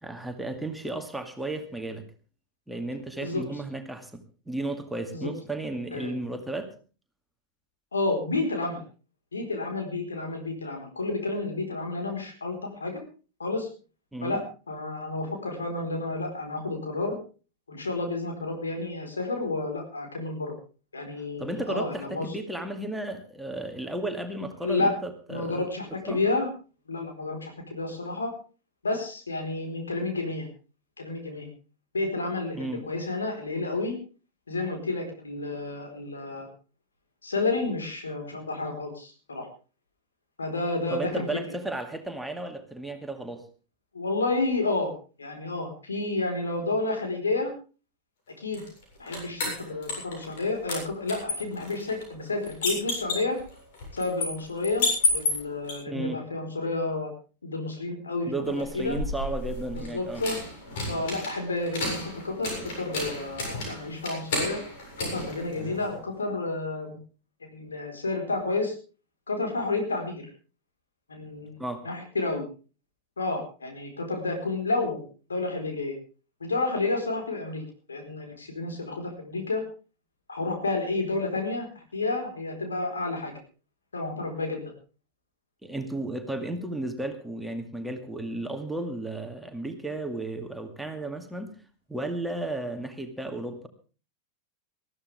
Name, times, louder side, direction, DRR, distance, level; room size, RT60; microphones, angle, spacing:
voice 1, 0.0-2.0 2.7-6.7 14.1-14.4 21.4-25.7 26.1-26.2 32.5-32.8 40.9-43.5 55.9-56.2 58.3-60.2 71.6-71.9 85.6-91.5 91.9-93.7, right 2 dB, 5° right, 6 dB, 2.2 m, -34 dB
voice 2, 7.9-8.8 9.3-13.0 13.4-13.7 14.2-17.2 17.7-20.5 20.9-22.3 24.6-25.0 25.3-26.5 26.9-28.3 28.8-30.5 31.0-31.5 31.9-33.9 34.5-36.5 37.2-39.5 40.4-41.3 43.9-44.9 45.2-47.5 48.4-48.6 49.0-53.4 53.9-57.1 57.4-59.0 59.9-60.4 60.9-64.6 65.0-67.0 67.5-68.7 69.3-70.3 71.1-72.4 73.2-75.0 75.3-75.9 76.4-77.6 77.9-79.6 80.3-83.3 83.9-84.6, left 3 dB, 75° left, 3 dB, 4.4 m, -30 dB
sound 1, 48.5-50.4 50.7-55.7 58.5-66.0, left 3 dB, 55° left, 7.4 m, -32 dB
20.5 x 14.5 x 3.5 m, 0.35 s
figure-of-eight pair, 90°, 0 cm